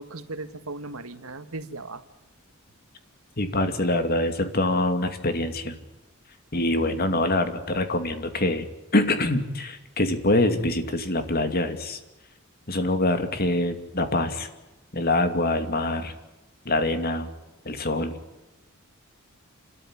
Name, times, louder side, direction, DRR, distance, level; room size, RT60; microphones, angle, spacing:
voice 1, 0.0-2.0, right 2 dB, 85° right, 10 dB, 1.7 m, -37 dB
voice 2, 3.4-5.8 6.5-8.7 8.9-12.0 12.7-14.5 14.9-16.1 16.6-17.3 17.6-18.1, left 1 dB, 45° left, 8 dB, 2.5 m, -25 dB
29.0 x 13.5 x 9.9 m, 1.0 s
head